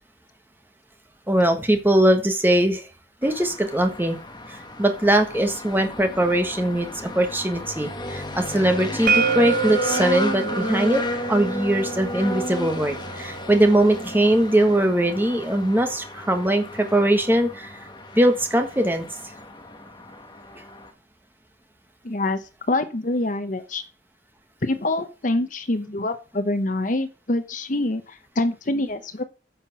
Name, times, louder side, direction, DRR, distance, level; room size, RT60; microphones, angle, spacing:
voice 1, 1.3-2.9 3.2-4.2 4.5-11.0 11.3-17.7 18.1-19.0, right 1 dB, 10° right, 6 dB, 1.4 m, -21 dB
sound 1, 3.2-20.9, left 1 dB, 25° left, 1.5 m, -33 dB
sound 2, 9.1-14.9, right 6 dB, 50° right, 1.0 m, -28 dB
voice 2, 22.0-22.4 22.7-23.8 24.6-29.2, left 2 dB, 45° left, 10 dB, 0.9 m, -25 dB
9.7 x 5.9 x 6.1 m, 0.33 s
head